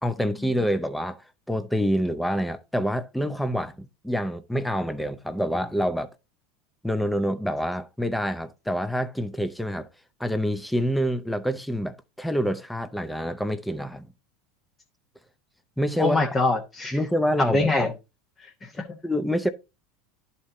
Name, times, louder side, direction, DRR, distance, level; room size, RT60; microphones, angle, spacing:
voice 1, 0.0-6.1 6.8-9.9 10.2-14.1 15.8-16.3 16.9-17.9 19.0-19.5, equal, 5° left, 0.6 m, -27 dB
voice 2, 16.0-17.0 17.4-17.9 18.4-18.8, left 2 dB, 20° left, 1.1 m, -24 dB
11.0 x 4.3 x 3.7 m
supercardioid pair, 140°, 0 cm